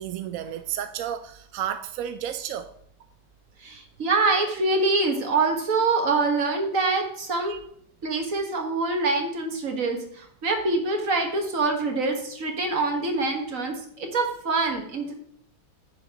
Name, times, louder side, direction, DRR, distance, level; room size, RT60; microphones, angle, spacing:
voice 1, 0.0-2.7 7.5-7.6, right 10 dB, 70° right, 0.8 m, -32 dB
voice 2, 3.6-7.5 8.0-15.1, right 3 dB, 50° right, 1.9 m, -25 dB
10.0 x 9.4 x 2.9 m
omnidirectional pair, 1.8 m